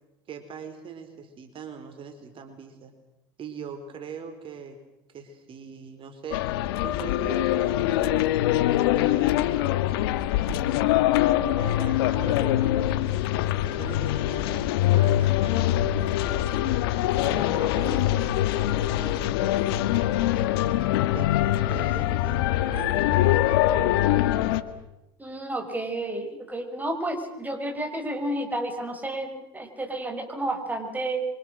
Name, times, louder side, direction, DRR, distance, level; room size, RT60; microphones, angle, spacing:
voice 1, 0.3-2.9 3.4-4.8 5.1-6.6 6.8-8.4 8.9-10.2 11.5-13.1 13.7-16.5 17.2-20.5 21.1-24.0, right 6 dB, 45° right, 6 dB, 4.3 m, -41 dB
sound 1, 6.3-24.6, left 14 dB, 80° left, 1.7 m, -23 dB
voice 2, 25.2-31.3, right 1 dB, 15° right, 5 dB, 5.5 m, -31 dB
27.5 x 25.0 x 6.4 m, 0.92 s
hypercardioid pair, 85°, 12 cm